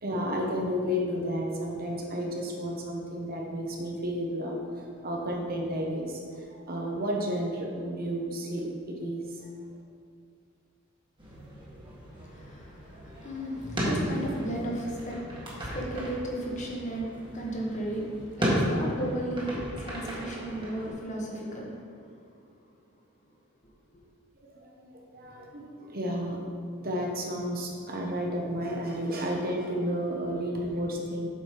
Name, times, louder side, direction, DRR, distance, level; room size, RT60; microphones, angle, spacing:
voice 1, 0.0-9.5 24.4-26.4 26.8-31.3, equal, 45° right, -1 dB, 1.2 m, -32 dB
sound 1, 11.2-20.9, equal, 20° right, 1.6 m, -34 dB
voice 2, 12.2-22.1, right 1 dB, 35° left, -2 dB, 1.4 m, -35 dB
7.9 x 5.0 x 5.0 m, 2.2 s
head